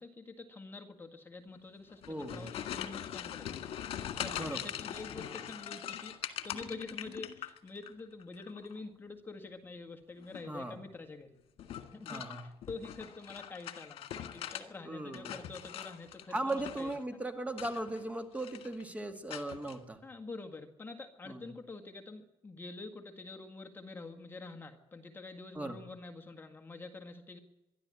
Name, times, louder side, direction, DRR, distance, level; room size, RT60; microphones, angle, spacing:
voice 1, 0.0-2.0 2.3-6.2 6.4-11.4 11.9-17.0 20.0-27.4, left 3 dB, 20° left, 3 dB, 1.9 m, -47 dB
sound 1, 1.9-7.9 8.2-8.8 10.2-10.6 11.6-14.7 15.0-17.0 17.5-18.1 18.4-18.8 19.3-19.8, left 10 dB, 85° left, 1.8 m, -42 dB
voice 2, 2.1-2.6 4.4-4.6 10.5-10.8 12.1-12.4 14.8-15.3 16.3-20.0 21.3-21.4 25.6-25.8, right 1 dB, 15° right, 7 dB, 2.1 m, -38 dB
23.0 x 13.0 x 9.9 m, 0.97 s
cardioid pair, 130°, 10 cm